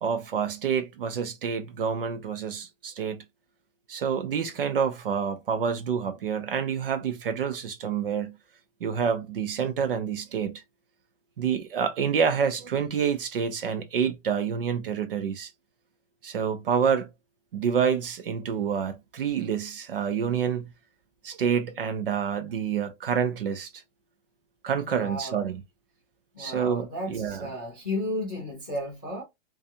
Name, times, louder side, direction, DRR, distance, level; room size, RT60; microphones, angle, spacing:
voice 1, 0.0-3.2 3.9-8.3 8.8-10.6 11.4-15.5 16.2-17.1 17.5-20.7 21.2-23.7 24.6-25.6 26.4-27.5, right 7 dB, 45° right, 0.5 m, -28 dB
voice 2, 24.8-25.5 26.3-29.2, left 1 dB, 10° left, 0.4 m, -34 dB
2.6 x 2.3 x 2.5 m
hypercardioid pair, 175°, 38 cm